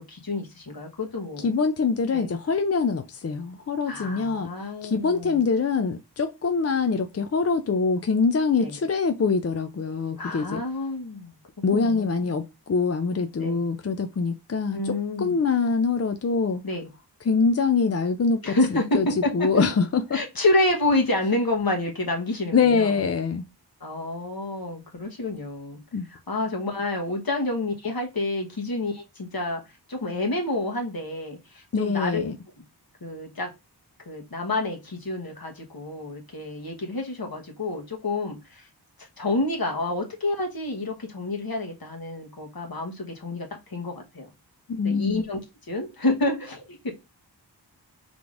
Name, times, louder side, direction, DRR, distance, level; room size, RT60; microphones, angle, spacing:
voice 1, 0.1-1.5 2.1-2.3 3.9-5.4 8.6-8.8 10.2-11.3 11.7-12.1 13.4-13.6 14.7-15.4 16.6-16.9 18.4-19.6 20.1-22.9 23.8-25.8 26.1-29.6 29.9-32.3 33.0-33.5 34.1-38.7 39.2-44.3 44.8-45.4 45.7-46.9, left 2 dB, 55° left, 1.2 m, -28 dB
voice 2, 1.4-10.6 11.6-16.6 17.3-18.6 18.9-19.1 19.3-20.2 22.5-23.4 25.9-26.1 31.7-32.4 44.7-45.2, left 5 dB, 40° left, 0.4 m, -24 dB
5.0 x 3.5 x 2.5 m
wide cardioid pair, 45°, 42 cm